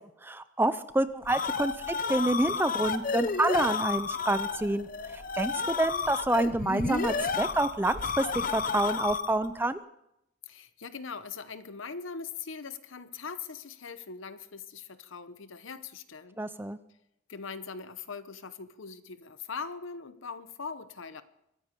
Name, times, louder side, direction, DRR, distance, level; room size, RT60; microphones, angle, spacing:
voice 1, 0.2-4.9 5.1-9.8 16.4-16.8, right 2 dB, 10° right, 13 dB, 0.4 m, -28 dB
sound 1, 1.0-9.5, left 5 dB, 40° left, 0.7 m, -32 dB
voice 2, 10.5-16.4 17.3-21.2, left 5 dB, 70° left, 13 dB, 0.9 m, -41 dB
23.0 x 9.8 x 5.2 m, 0.82 s
head